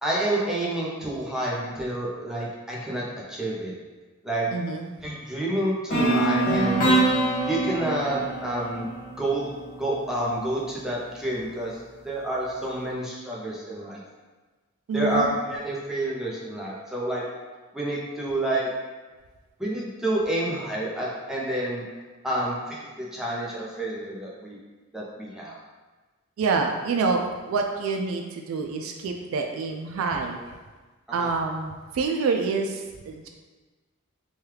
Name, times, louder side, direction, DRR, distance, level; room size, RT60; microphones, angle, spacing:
voice 1, 0.0-3.0 3.3-3.7 4.2-4.5 5.0-7.0 7.5-8.9 9.2-9.5 9.8-11.7 12.0-14.0 14.9-17.2 17.7-18.7 19.6-21.8 22.2-24.6 24.9-25.6 31.2-31.3, right 1 dB, 5° right, -5 dB, 0.5 m, -29 dB
voice 2, 4.5-4.9 14.9-15.3 26.4-30.4 31.1-33.3, right 4 dB, 70° right, 3 dB, 0.3 m, -27 dB
sound 1, 5.9-9.9, right 2 dB, 45° left, 0.9 m, -24 dB
3.0 x 2.2 x 3.2 m, 1.3 s
head